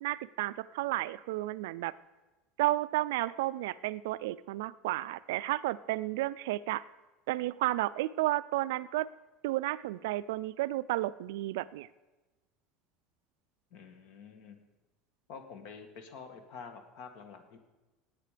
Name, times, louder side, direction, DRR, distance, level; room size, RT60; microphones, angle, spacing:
voice 1, 0.0-1.9 2.6-6.8 7.3-9.1 9.4-11.9, right 17 dB, 90° right, 16 dB, 0.4 m, -32 dB
voice 2, 13.7-14.6 15.3-17.6, left 5 dB, 50° left, 7 dB, 1.7 m, -48 dB
18.0 x 9.0 x 5.1 m, 1.1 s
cardioid pair, 180°, 0 cm